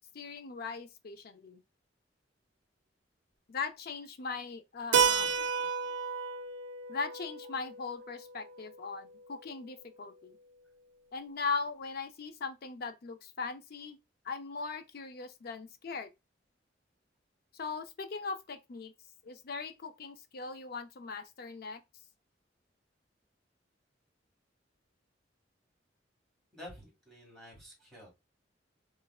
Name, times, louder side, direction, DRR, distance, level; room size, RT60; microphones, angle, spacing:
voice 1, 0.1-1.6 3.5-5.4 6.9-10.4 11.1-14.0 14.2-16.1 17.5-18.9 19.2-21.8, left 4 dB, 55° left, 0.5 m, -39 dB
Keyboard (musical), 4.9-9.4, right 6 dB, 85° right, 0.4 m, -32 dB
voice 2, 26.5-28.1, left 1 dB, ahead, 1.8 m, -50 dB
3.5 x 3.2 x 2.3 m
head